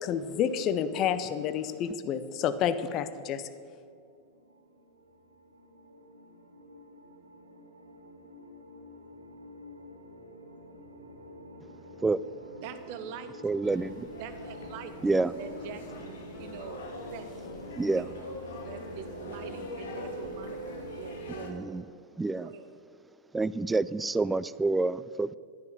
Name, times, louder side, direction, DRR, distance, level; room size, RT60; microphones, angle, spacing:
voice 1, 0.0-3.4, left 8 dB, 35° left, 12 dB, 0.8 m, -29 dB
sound 1, 3.6-21.6, right 1 dB, 80° right, 1.5 m, -46 dB
voice 2, 12.6-13.3 14.2-14.9 15.4-16.8 17.1-17.3 17.9-21.8 22.4-22.7, right 8 dB, 45° right, 10 dB, 1.1 m, -44 dB
voice 3, 13.4-14.1 15.0-15.3 17.8-18.1 21.4-21.8 22.2-22.5 23.3-25.4, right 3 dB, 10° right, 18 dB, 0.3 m, -28 dB
sound 2, 13.6-21.5, left 3 dB, 60° left, 1.8 m, -44 dB
10.5 x 10.5 x 6.8 m, 2.4 s
figure-of-eight pair, 90°, 0 cm